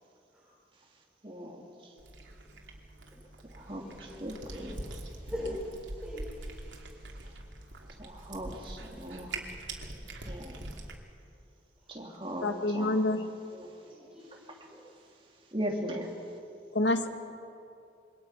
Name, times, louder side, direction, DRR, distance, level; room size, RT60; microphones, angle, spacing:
voice 1, 1.2-1.6 3.5-4.9 8.0-9.4 10.2-10.6 11.9-13.2 13.5-13.7 15.5-16.1, equal, 30° right, -1 dB, 2.8 m, -38 dB
Cat, 2.0-11.0, right 2 dB, 90° right, 2.9 m, -44 dB
voice 2, 3.8-4.2 4.5-4.7 5.3-5.6 6.0-6.6 13.8-14.8, left 1 dB, 5° right, -7 dB, 5.0 m, -42 dB
voice 3, 12.4-13.2 16.7-17.1, left 2 dB, 80° left, 7 dB, 1.7 m, -27 dB
27.0 x 23.5 x 5.8 m, 2.5 s
head